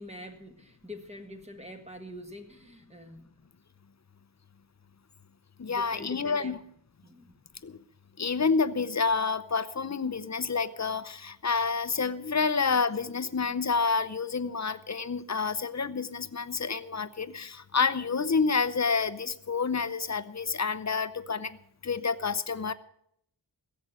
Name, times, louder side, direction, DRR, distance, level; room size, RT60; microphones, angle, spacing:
voice 1, 0.0-3.3 5.7-6.6 7.0-7.4, left 1 dB, 15° right, 5 dB, 1.8 m, -45 dB
voice 2, 5.6-6.6 7.6-7.8 8.2-21.6 21.8-22.7, left 5 dB, 35° left, 14 dB, 0.8 m, -29 dB
16.0 x 7.9 x 8.1 m, 0.70 s
wide cardioid pair, 70°, 45 cm